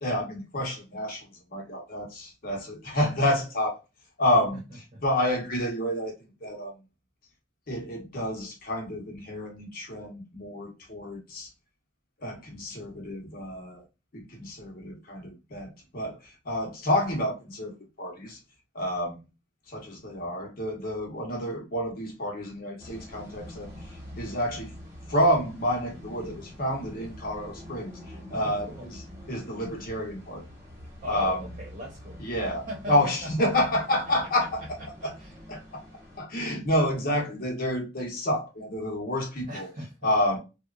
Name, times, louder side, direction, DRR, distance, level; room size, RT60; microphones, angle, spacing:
voice 1, 0.0-3.8 4.2-4.6 5.0-6.1 6.4-6.8 7.7-11.5 12.2-13.8 14.1-18.4 18.7-19.2 19.7-23.7 24.2-24.7 25.1-29.0 29.3-30.4 31.1-31.5 32.2-34.6 35.0-35.1 35.5-35.8 36.2-39.7 40.0-40.4, left 1 dB, 50° left, 0.8 m, -29 dB
sound 1, 22.8-36.2, left 1 dB, 15° right, 0.8 m, -45 dB
voice 2, 28.3-28.9 31.0-32.2 32.7-33.3 34.4-34.5 34.8-35.3 39.5-40.1, equal, 40° right, 0.9 m, -40 dB
2.9 x 2.1 x 2.3 m
head